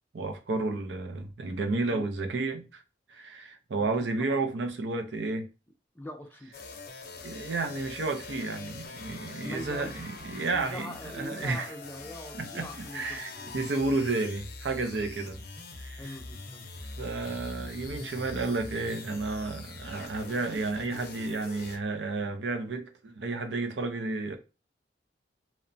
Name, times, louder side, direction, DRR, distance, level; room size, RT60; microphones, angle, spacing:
voice 1, 0.1-2.8 3.1-5.5 7.2-11.7 12.3-15.4 15.8-16.2 17.0-24.4, right 3 dB, 80° right, 0.5 m, -32 dB
voice 2, 5.9-6.5 9.4-10.0 10.5-13.6 15.0-15.1 16.0-16.6, left 1 dB, 10° left, 0.4 m, -43 dB
sound 1, 6.5-21.8, left 3 dB, 60° left, 0.5 m, -43 dB
2.9 x 2.1 x 2.5 m
head